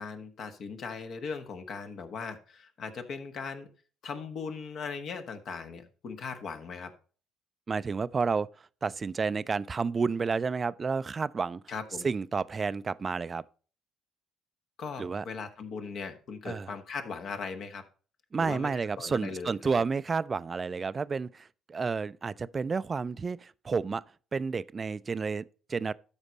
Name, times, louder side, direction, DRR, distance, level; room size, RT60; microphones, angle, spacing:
voice 1, 0.0-3.7 4.0-6.9 11.7-12.0 14.8-17.8 18.4-19.8, left 5 dB, 55° left, 1.3 m, -39 dB
voice 2, 7.7-8.5 8.8-11.6 12.0-13.4 15.0-15.2 16.5-16.7 18.3-24.0 24.3-25.9, right 5 dB, 35° right, 0.4 m, -30 dB
13.0 x 5.2 x 4.0 m
hypercardioid pair, 50°, 0 cm